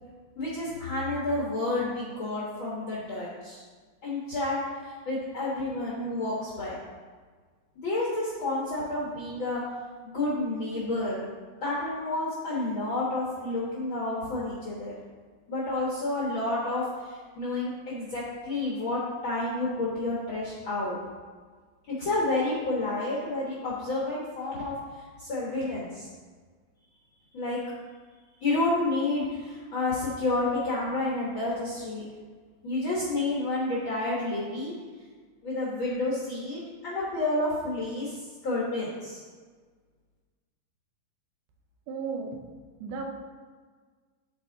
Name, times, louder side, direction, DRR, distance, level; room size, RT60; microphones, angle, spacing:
voice 1, 0.4-3.6 4.0-6.8 7.8-9.6 10.0-11.3 11.6-14.9 15.5-21.0 21.9-24.7 25.2-26.1 27.3-27.6 28.4-32.0 32.6-34.7 35.4-39.2, left 2 dB, 85° left, -6 dB, 1.1 m, -30 dB
voice 2, 41.9-42.4 42.8-43.0, right 5 dB, 90° right, 2 dB, 2.9 m, -34 dB
12.5 x 4.4 x 3.9 m, 1.5 s
omnidirectional pair, 4.4 m